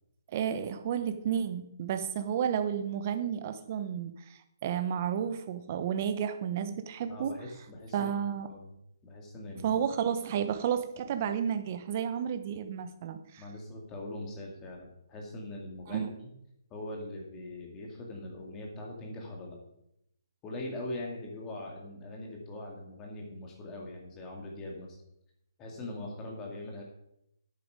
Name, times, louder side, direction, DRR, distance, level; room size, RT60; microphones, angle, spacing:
voice 1, 0.3-7.3 7.9-8.5 9.6-13.4 15.9-16.1, right 8 dB, 30° right, 9 dB, 0.9 m, -32 dB
voice 2, 7.1-8.1 8.5-8.7 9.0-9.8 13.4-16.1 16.7-19.6 20.4-25.0 25.6-26.8, left 1 dB, 15° left, -1 dB, 2.3 m, -41 dB
10.5 x 8.9 x 5.1 m, 0.79 s
hypercardioid pair, 165°, 2 cm